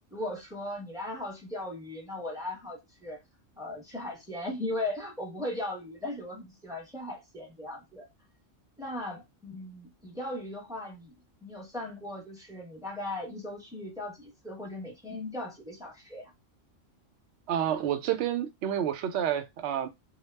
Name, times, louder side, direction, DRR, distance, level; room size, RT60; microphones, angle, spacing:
voice 1, 0.1-3.2 3.6-8.1 8.8-11.1 11.4-16.3, left 1 dB, 5° right, 0.6 m, -38 dB
voice 2, 17.5-19.9, right 10 dB, 65° right, 0.8 m, -29 dB
2.3 x 2.0 x 3.1 m
omnidirectional pair, 1.3 m